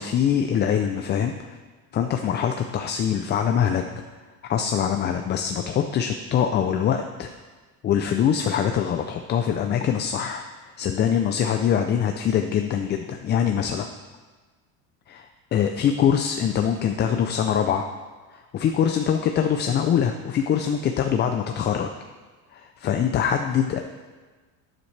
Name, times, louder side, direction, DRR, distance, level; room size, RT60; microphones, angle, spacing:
voice 1, 0.0-1.3 1.9-3.8 4.5-7.3 7.8-10.4 10.8-13.9 15.1-15.3 15.5-17.9 18.3-21.9 22.5-23.8, left 8 dB, 25° left, 5 dB, 0.4 m, -23 dB
11.5 x 10.0 x 3.2 m, 1.3 s
cardioid pair, 140°, 42 cm